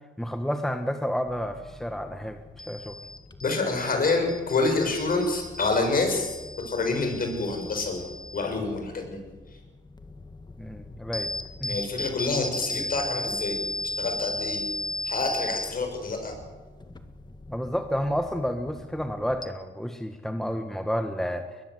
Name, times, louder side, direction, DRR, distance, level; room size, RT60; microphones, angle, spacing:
voice 1, 0.2-2.4 2.7-3.0 10.6-11.3 11.6-11.8 17.5-21.6, equal, ahead, 6 dB, 1.5 m, -30 dB
sound 1, 1.3-19.5, left 1 dB, 20° left, 1.7 m, -37 dB
voice 2, 3.4-6.3 6.7-8.1 8.3-9.2 11.7-13.6 14.0-14.6 15.0-16.3, left 3 dB, 45° left, 5 dB, 7.2 m, -27 dB
22.0 x 21.0 x 8.0 m, 1.3 s
cardioid pair, 90°, 20 cm